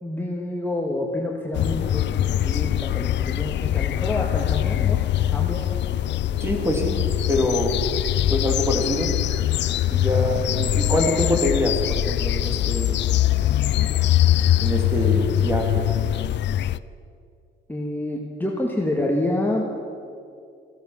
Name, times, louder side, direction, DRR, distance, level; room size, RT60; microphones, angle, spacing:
voice 1, 0.0-5.0 5.3-5.6 17.7-19.6, left 1 dB, 10° left, -1 dB, 1.8 m, -27 dB
sound 1, 1.5-16.8, left 12 dB, 65° left, 0.5 m, -22 dB
voice 2, 6.4-7.0 7.3-7.7 8.3-9.1 9.9-13.0 14.6-15.9, left 1 dB, 10° right, 2 dB, 2.9 m, -24 dB
15.0 x 12.5 x 7.2 m, 2.3 s
cardioid pair, 90°, 20 cm